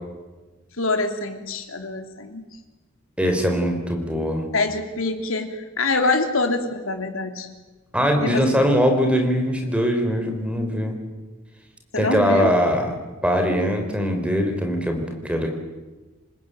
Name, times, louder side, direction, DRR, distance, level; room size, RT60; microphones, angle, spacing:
voice 1, 0.8-2.5 4.5-7.5 8.2-8.7 11.9-12.5, left 3 dB, 75° left, 6 dB, 3.2 m, -25 dB
voice 2, 3.2-4.5 7.9-11.0 12.0-12.9 13.2-15.5, equal, 5° right, 4 dB, 4.3 m, -21 dB
27.5 x 20.0 x 9.2 m, 1.2 s
head